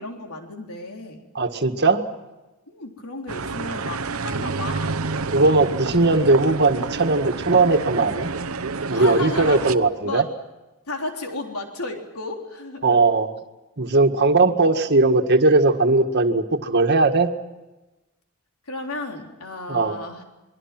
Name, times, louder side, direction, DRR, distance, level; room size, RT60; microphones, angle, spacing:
voice 1, 0.0-1.2 2.7-5.0 8.9-9.7 10.0-10.3 10.9-13.0 18.7-20.2, left 2 dB, 85° left, 2 dB, 3.7 m, -33 dB
voice 2, 1.4-2.0 5.3-8.3 8.9-10.3 12.8-13.3 13.8-17.3 19.7-20.0, right 3 dB, 50° right, 5 dB, 1.8 m, -18 dB
sound 1, 3.3-9.8, right 4 dB, 70° right, 0.9 m, -29 dB
28.5 x 22.5 x 6.0 m, 1.1 s
head